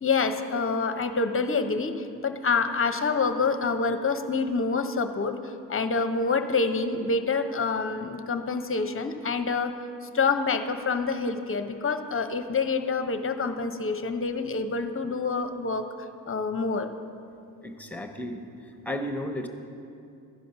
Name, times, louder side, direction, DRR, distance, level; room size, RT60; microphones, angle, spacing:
voice 1, 0.0-9.7 10.1-15.9 16.3-16.9, left 4 dB, 30° left, 8 dB, 0.7 m, -27 dB
voice 2, 17.6-18.4 18.8-19.5, left 1 dB, 5° left, 4 dB, 1.0 m, -33 dB
12.0 x 5.2 x 5.8 m, 2.5 s
supercardioid pair, 45°, 46 cm